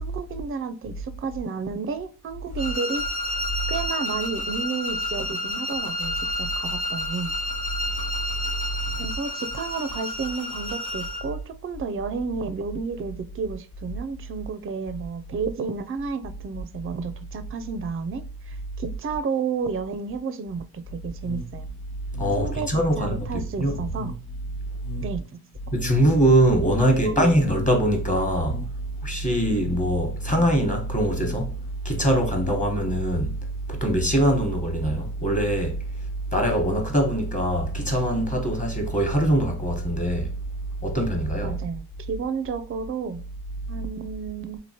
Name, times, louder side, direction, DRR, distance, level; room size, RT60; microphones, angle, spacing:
voice 1, 0.0-3.1 3.7-7.3 9.0-21.7 22.4-24.1 25.0-25.2 26.9-27.3 41.4-43.2 43.7-44.6, right 5 dB, 35° right, 0.4 m, -31 dB
sound 1, 2.6-11.3, left 1 dB, 90° left, 1.1 m, -30 dB
sound 2, 21.2-32.8, left 2 dB, 55° left, 1.0 m, -39 dB
voice 2, 22.2-23.9 25.7-28.6 29.0-31.5 31.8-33.3 33.7-35.8 36.3-40.3 40.8-41.6, right 1 dB, 20° left, 1.1 m, -22 dB
3.0 x 2.5 x 2.8 m
cardioid pair, 60°, 38 cm